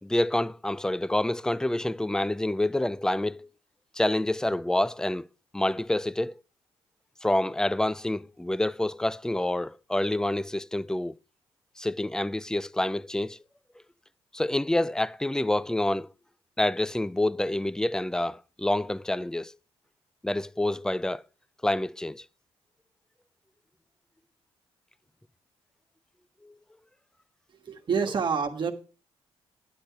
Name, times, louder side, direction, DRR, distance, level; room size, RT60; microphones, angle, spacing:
voice 1, 0.0-3.5 3.9-5.3 5.5-6.4 7.2-11.2 11.8-13.4 14.3-16.1 16.6-19.6 20.2-21.2 21.6-22.2 26.4-26.5, left 1 dB, 5° left, 0.4 m, -27 dB
voice 2, 27.6-28.7, right 6 dB, 45° right, 1.5 m, -27 dB
10.5 x 7.7 x 4.7 m
cardioid pair, 85°, 11 cm